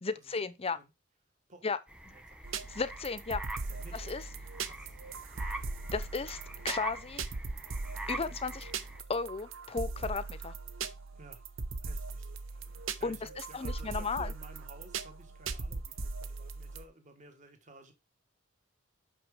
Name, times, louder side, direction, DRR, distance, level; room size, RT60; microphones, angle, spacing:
voice 1, 0.0-0.8 1.6-1.8 2.1-2.2 2.7-3.4 3.9-4.2 5.9-6.4 6.6-7.2 8.1-8.7 9.1-10.5 13.0-14.3, left 4 dB, 30° left, 0.6 m, -34 dB
sound 1, 1.9-9.0, right 2 dB, 5° right, 0.8 m, -45 dB
sound 2, 2.4-16.8, right 4 dB, 80° right, 0.8 m, -40 dB
voice 2, 3.6-4.1 4.6-5.0 11.2-11.4 11.8-12.3 13.0-17.9, right 2 dB, 40° right, 1.6 m, -54 dB
6.1 x 6.0 x 5.0 m
head